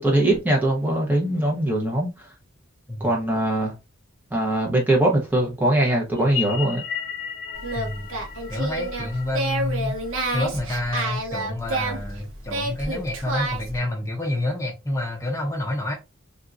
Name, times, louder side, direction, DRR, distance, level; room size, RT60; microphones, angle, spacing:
voice 1, 0.0-2.1 3.0-3.7 4.3-6.8, right 1 dB, 10° right, 1.0 m, -21 dB
sound 1, 6.2-10.7, left 8 dB, 55° left, 0.8 m, -35 dB
Singing, 7.5-13.8, right 2 dB, 70° right, 1.1 m, -29 dB
voice 2, 7.7-8.1 8.5-10.0 10.3-15.9, left 1 dB, 15° left, 0.7 m, -28 dB
3.6 x 2.7 x 2.5 m
head